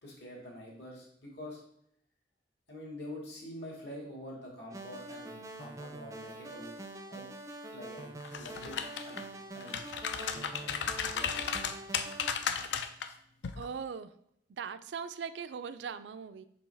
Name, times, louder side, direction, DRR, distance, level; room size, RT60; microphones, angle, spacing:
voice 1, 0.0-1.6 2.7-6.7 7.1-7.2 7.7-8.8 9.0-9.2 9.5-10.8 11.1-11.5, left 1 dB, 70° left, -3 dB, 2.2 m, -46 dB
sound 1, 4.7-12.3, right 2 dB, 20° right, 0.4 m, -45 dB
sound 2, 8.2-9.2 9.6-13.1 13.4-13.6, left 7 dB, 85° left, 0.5 m, -34 dB
voice 2, 13.6-14.1 14.5-16.4, right 6 dB, 80° right, 12 dB, 0.4 m, -40 dB
5.3 x 5.1 x 3.4 m, 0.70 s
head